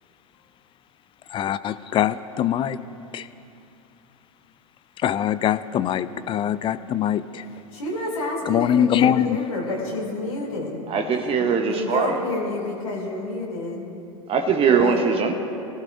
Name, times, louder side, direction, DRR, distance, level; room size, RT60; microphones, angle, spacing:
voice 1, 1.3-2.8 3.1-3.3 5.0-7.5 8.5-9.4, left 10 dB, 30° left, 15 dB, 0.4 m, -23 dB
voice 2, 7.7-10.9 11.2-13.9 14.8-15.0, left 2 dB, 85° left, -5 dB, 3.1 m, -29 dB
voice 3, 10.9-12.2 14.3-15.3, right 6 dB, 35° right, 4 dB, 1.0 m, -21 dB
21.0 x 15.5 x 2.6 m, 2.7 s
hypercardioid pair, 90°, 18 cm